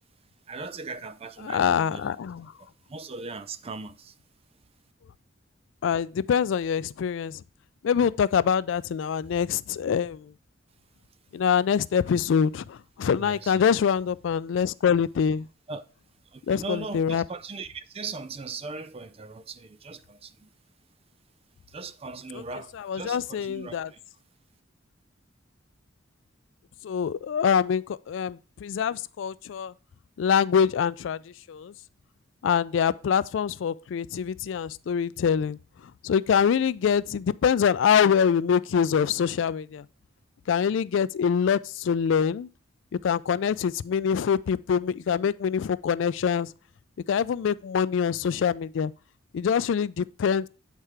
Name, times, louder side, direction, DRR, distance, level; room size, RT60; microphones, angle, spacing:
voice 1, 0.5-2.2 2.9-4.1 13.2-13.6 15.7-15.8 16.3-20.3 21.7-24.0, right 4 dB, 30° right, 0.4 m, -39 dB
voice 2, 1.4-2.5 5.8-7.4 7.8-10.3 11.3-15.5 16.5-17.2 22.8-23.9 26.8-29.7 30.2-31.7 32.4-35.6 36.0-39.9 40.5-42.5 43.0-46.5 47.1-48.9 49.3-50.5, left 7 dB, 70° left, 0.3 m, -25 dB
8.1 x 4.5 x 4.8 m
head